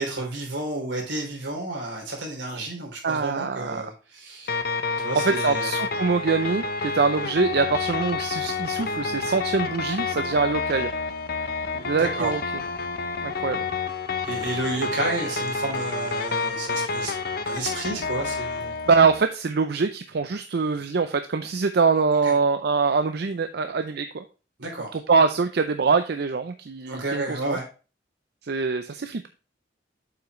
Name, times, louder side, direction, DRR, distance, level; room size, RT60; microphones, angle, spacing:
voice 1, 0.0-4.6 5.0-5.7 11.8-12.3 14.3-17.1 17.4-18.8 22.2-22.3 24.6-24.9 26.9-27.6, right 2 dB, 80° right, 0 dB, 3.4 m, -31 dB
voice 2, 3.0-3.8 5.2-10.9 11.7-12.4 13.2-13.6 18.9-24.2 24.9-27.6 28.4-29.3, right 4 dB, 60° right, 8 dB, 0.5 m, -24 dB
sound 1, 4.5-19.2, left 4 dB, 55° left, 0.8 m, -29 dB
7.7 x 5.8 x 3.0 m, 0.33 s
head